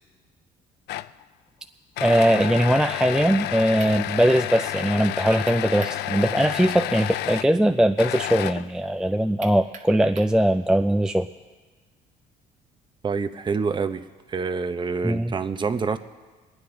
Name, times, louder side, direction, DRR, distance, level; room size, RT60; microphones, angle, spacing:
sound 1, 0.9-1.2 2.0-7.5 8.0-8.9, left 14 dB, 75° left, 0.4 m, -30 dB
voice 1, 2.0-11.3 15.0-15.3, right 1 dB, 5° right, 7 dB, 0.3 m, -21 dB
sound 2, 3.8-4.0 5.5-6.0 6.4-6.5 9.4-10.4, right 5 dB, 45° right, 1.3 m, -42 dB
voice 2, 13.0-16.0, right 5 dB, 30° right, 9 dB, 0.8 m, -27 dB
24.0 x 9.7 x 3.9 m, 1.3 s
cardioid pair, 110°, 17 cm